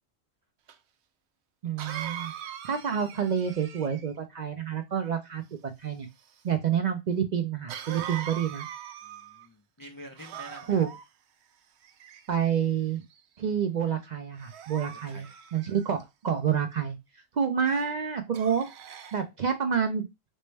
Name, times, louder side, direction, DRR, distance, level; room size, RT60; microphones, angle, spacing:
Cough, 0.7-0.8 1.8-4.2 7.7-9.5 10.2-11.0 11.8-12.5 13.1-13.4 14.4-16.0 17.6-17.9 18.3-19.2, right 9 dB, 90° right, 0.8 m, -41 dB
voice 1, 1.6-2.3 2.6-6.1 6.4-8.7 10.7-10.9 12.3-13.0 13.4-15.3 15.5-17.0 17.3-18.7 19.1-20.1, right 7 dB, 55° right, 6 dB, 0.5 m, -28 dB
voice 2, 9.0-10.9 14.9-15.4 19.2-19.3, equal, 30° left, 2 dB, 0.4 m, -47 dB
4.3 x 2.1 x 3.1 m, 0.22 s
omnidirectional pair, 1.1 m